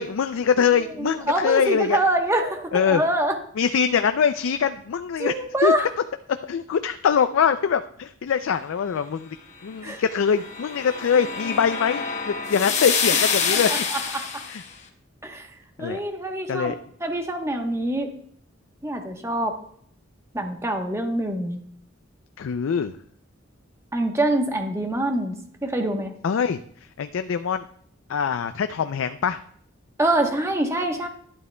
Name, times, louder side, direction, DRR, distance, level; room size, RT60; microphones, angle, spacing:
voice 1, 0.0-2.0 2.7-3.0 3.6-5.3 5.6-5.7 6.4-9.4 9.6-13.9 14.5-14.6 15.8-16.0 16.5-16.8 22.4-22.9 26.2-27.6 28.1-29.4, left 7 dB, 80° left, 10 dB, 0.4 m, -23 dB
voice 2, 1.0-3.4 5.2-5.8 9.8-10.0 13.5-14.4 15.2-15.5 15.8-16.7 17.0-18.1 18.8-19.6 20.3-21.6 23.9-25.3 25.6-26.1 30.0-31.1, right 1 dB, 15° right, 4 dB, 1.0 m, -25 dB
sound 1, 10.0-14.6, left 6 dB, 35° left, 1.1 m, -27 dB
12.0 x 11.0 x 2.2 m, 0.63 s
head